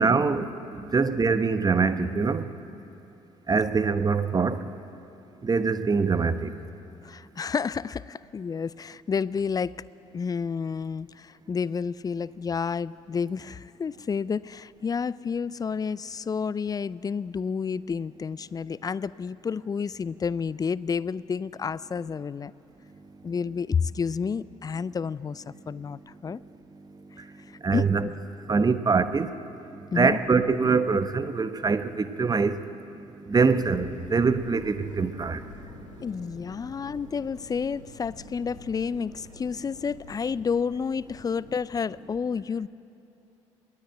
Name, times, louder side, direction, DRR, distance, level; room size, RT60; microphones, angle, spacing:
voice 1, 0.0-2.5 3.5-4.6 5.4-6.6 26.3-26.5 26.8-28.1 28.5-36.0, right 4 dB, 25° right, 12 dB, 1.0 m, -25 dB
voice 2, 7.0-9.8 10.1-22.5 23.2-26.4 27.5-28.1 29.9-30.2 36.0-42.7, left 6 dB, 25° left, 20 dB, 0.5 m, -30 dB
sound 1, 33.5-41.5, left 3 dB, 85° left, 1.5 m, -47 dB
22.5 x 15.5 x 9.0 m, 2.8 s
figure-of-eight pair, 50°, 16 cm